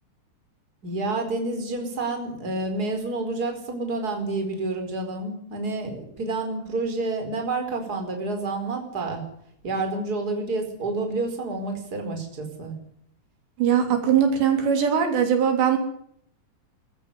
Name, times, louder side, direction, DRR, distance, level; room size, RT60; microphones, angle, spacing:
voice 1, 0.8-9.2 9.6-12.7, right 3 dB, 20° right, 4 dB, 4.7 m, -29 dB
voice 2, 13.6-15.8, right 8 dB, 75° right, 5 dB, 5.1 m, -21 dB
22.5 x 14.5 x 9.9 m, 0.70 s
omnidirectional pair, 5.1 m